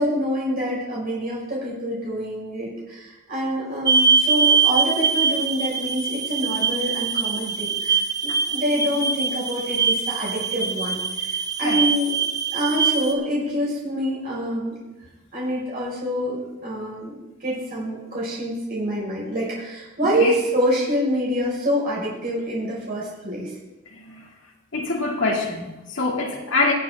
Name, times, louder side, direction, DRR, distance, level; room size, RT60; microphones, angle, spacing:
voice 1, 0.0-12.1 12.5-14.8 15.3-23.6, equal, 45° right, -6 dB, 4.6 m, -26 dB
sound 1, 3.9-13.1, right 5 dB, 20° right, 0.8 m, -23 dB
voice 2, 20.0-20.4 23.9-24.3 24.7-26.7, left 3 dB, 65° left, 0 dB, 2.2 m, -25 dB
21.5 x 7.3 x 3.5 m, 1.1 s
head